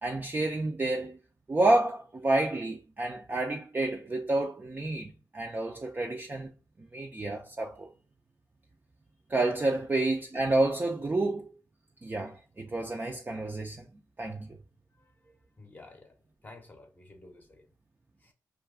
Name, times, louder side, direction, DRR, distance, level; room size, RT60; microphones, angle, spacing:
voice 1, 0.0-1.2 1.5-6.5 6.8-7.9 9.3-11.5 12.0-13.8 14.2-14.5, right 2 dB, 25° right, 0.4 m, -29 dB
voice 2, 15.6-16.1 16.4-17.6 18.2-18.3, left 2 dB, 25° left, 0.7 m, -51 dB
2.4 x 2.2 x 3.5 m
cardioid pair, 55°, 7 cm